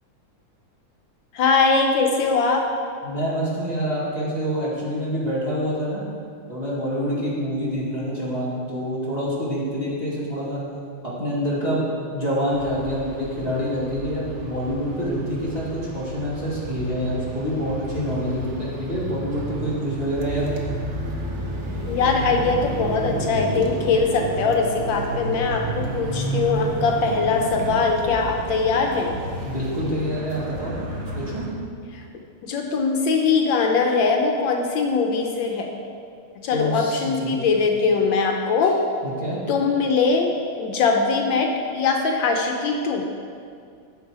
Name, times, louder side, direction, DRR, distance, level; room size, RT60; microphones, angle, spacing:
voice 1, 1.3-2.6 21.9-29.2 31.9-32.0 32.4-35.7 36.4-38.8 39.5-40.3 40.6-43.1, left 4 dB, 75° left, 3 dB, 1.4 m, -21 dB
voice 2, 3.0-6.0 6.5-10.6 11.0-20.4 29.4-30.8 31.2-31.5 36.5-37.4 39.0-39.4, equal, 20° right, -8 dB, 1.9 m, -26 dB
sound 1, 12.5-31.5, right 1 dB, 45° right, 1.1 m, -31 dB
10.0 x 6.7 x 4.7 m, 2.3 s
omnidirectional pair, 2.2 m